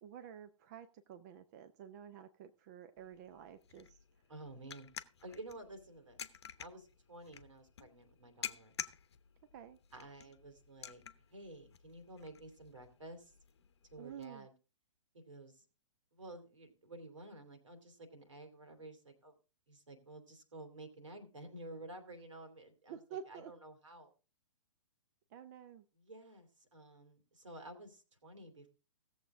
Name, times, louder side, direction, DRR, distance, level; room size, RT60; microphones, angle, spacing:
voice 1, 0.0-3.9 9.5-9.8 14.0-14.5 22.9-23.5 25.3-25.8, right 8 dB, 35° right, 9 dB, 0.7 m, -50 dB
sound 1, 3.0-14.3, left 8 dB, 55° left, 0.9 m, -51 dB
voice 2, 4.3-4.9 5.2-6.2 6.6-8.8 9.9-11.0 11.3-13.3 13.9-14.5 15.1-15.6 16.1-19.4 19.7-23.0 23.3-24.1 25.9-28.7, right 2 dB, 70° right, 7 dB, 2.9 m, -52 dB
17.0 x 7.3 x 3.7 m, 0.33 s
figure-of-eight pair, 120°, 17 cm